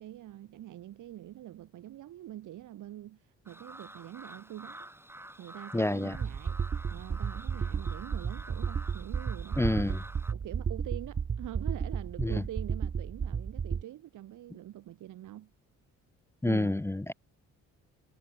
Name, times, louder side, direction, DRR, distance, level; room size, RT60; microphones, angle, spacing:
voice 1, 0.0-4.9 5.4-6.6 6.9-9.8 10.3-15.5 16.4-16.7, right 13 dB, 80° right, 7.6 m, -45 dB
sound 1, 3.5-10.3, right 1 dB, 10° right, 4.1 m, -49 dB
voice 2, 5.7-6.2 9.6-10.0 12.2-12.4 16.4-17.1, left 1 dB, 10° left, 0.7 m, -28 dB
sound 2, 6.1-13.8, right 6 dB, 35° right, 1.3 m, -33 dB
cardioid pair, 90°, 30 cm